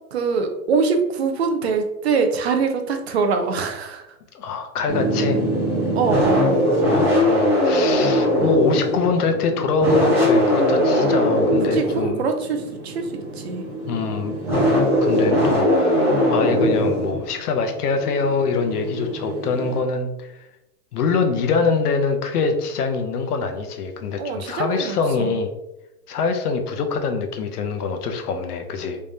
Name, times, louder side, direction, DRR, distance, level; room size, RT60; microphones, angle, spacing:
voice 1, 0.1-4.2 5.9-6.7 11.7-13.6 24.2-25.4, right 5 dB, 45° right, 6 dB, 0.5 m, -24 dB
voice 2, 4.3-5.4 6.8-12.2 13.9-14.3 15.0-20.4 20.9-25.5 26.1-29.0, left 4 dB, 75° left, 6 dB, 0.8 m, -24 dB
sound 1, 4.9-19.8, equal, 5° right, 0.8 m, -21 dB
3.5 x 3.3 x 2.7 m, 0.89 s
hypercardioid pair, 165°, 46 cm